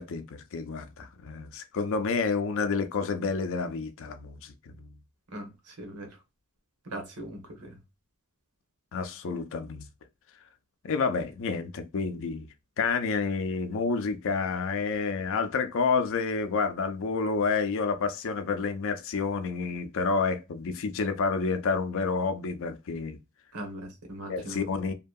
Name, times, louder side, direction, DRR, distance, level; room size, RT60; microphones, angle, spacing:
voice 1, 0.0-4.9 8.9-9.9 10.8-12.5 12.8-23.2 24.3-24.9, left 4 dB, 60° left, 0.4 m, -29 dB
voice 2, 5.3-6.2 6.8-7.8 23.5-24.7, right 1 dB, 85° right, 1.0 m, -40 dB
2.9 x 2.6 x 2.3 m
head